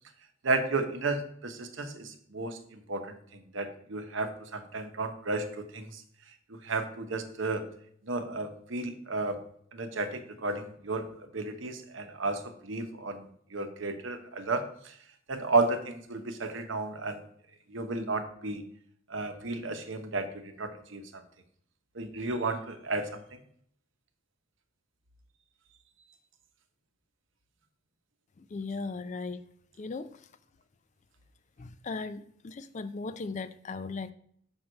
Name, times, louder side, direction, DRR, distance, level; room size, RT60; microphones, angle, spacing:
voice 1, 0.4-6.0 6.5-7.7 8.0-9.4 9.7-14.9 15.3-17.2 17.7-18.6 19.1-21.2 21.9-23.4, right 3 dB, 65° right, 7 dB, 0.9 m, -33 dB
voice 2, 28.4-29.4 29.8-30.2 31.6-34.1, left 4 dB, 35° left, 13 dB, 0.4 m, -37 dB
5.7 x 4.5 x 6.3 m, 0.64 s
head